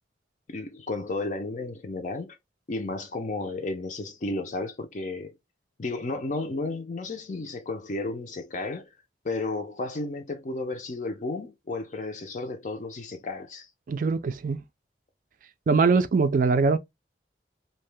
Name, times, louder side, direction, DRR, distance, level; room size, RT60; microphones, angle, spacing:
voice 1, 0.5-2.4 2.7-5.3 5.8-8.9 9.2-13.7, left 2 dB, 45° left, 0.5 m, -33 dB
voice 2, 13.9-14.6 15.7-16.8, right 4 dB, 45° right, 0.3 m, -22 dB
2.7 x 2.1 x 3.2 m
head